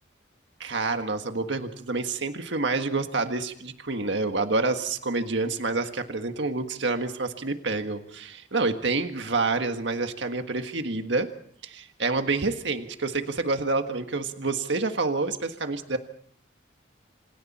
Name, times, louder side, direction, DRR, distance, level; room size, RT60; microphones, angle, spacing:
voice 1, 0.6-11.3 11.6-16.0, right 3 dB, 75° right, 6 dB, 1.6 m, -28 dB
28.0 x 27.0 x 4.3 m, 0.62 s
head